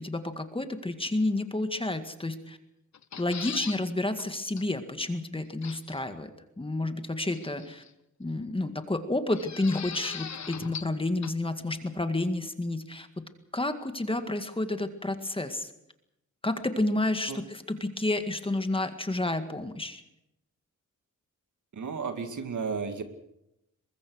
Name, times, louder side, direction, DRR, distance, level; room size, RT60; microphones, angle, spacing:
voice 1, 0.0-2.6 3.2-6.3 6.6-7.8 8.2-13.2 13.5-15.7 16.4-20.0, left 2 dB, 15° left, 8 dB, 1.9 m, -30 dB
sound 1, 2.9-3.8 4.2-4.3 4.6-4.7 5.6-6.0 7.3-7.9 9.3-11.0 11.2-11.3, left 7 dB, 60° left, 1.1 m, -39 dB
voice 2, 21.7-23.0, right 5 dB, 65° right, 8 dB, 2.3 m, -33 dB
23.0 x 21.5 x 6.4 m, 0.84 s
wide cardioid pair, 125°, 32 cm